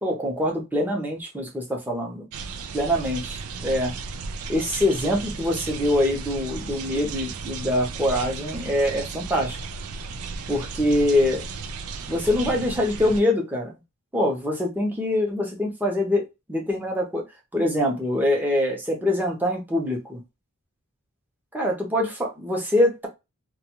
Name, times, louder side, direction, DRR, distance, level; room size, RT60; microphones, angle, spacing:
voice 1, 0.0-2.2 2.7-3.9 4.5-9.6 10.5-11.5 12.1-13.7 14.1-16.2 16.5-17.2 17.5-20.2 21.5-23.1, left 1 dB, 10° right, 0.7 m, -24 dB
sound 1, 2.3-13.2, right 4 dB, 85° right, 0.4 m, -35 dB
2.3 x 2.2 x 2.9 m
head